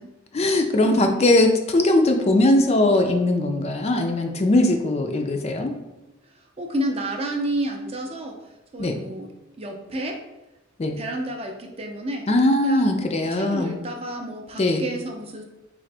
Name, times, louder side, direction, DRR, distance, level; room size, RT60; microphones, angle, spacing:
voice 1, 0.3-5.7 8.8-9.0 10.8-11.0 12.3-13.7 14.6-14.8, left 1 dB, 30° left, 5 dB, 0.3 m, -20 dB
voice 2, 6.6-8.4 8.7-9.3 9.6-10.2 11.0-12.3 12.6-15.4, right 1 dB, 30° right, 3 dB, 0.5 m, -30 dB
3.7 x 3.3 x 3.3 m, 1.0 s
head